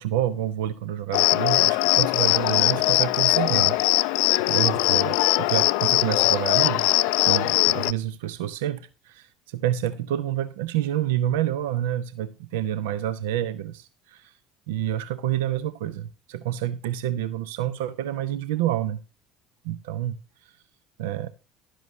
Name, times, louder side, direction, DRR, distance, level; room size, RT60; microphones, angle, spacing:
voice 1, 0.0-4.2 4.5-6.9 7.2-14.3 14.7-19.0 19.6-20.1 21.0-21.3, right 12 dB, 75° right, 0.5 m, -28 dB
Cricket, 1.1-7.9, left 19 dB, 70° left, 0.4 m, -21 dB
11.5 x 10.0 x 3.0 m
hypercardioid pair, 65°, 0 cm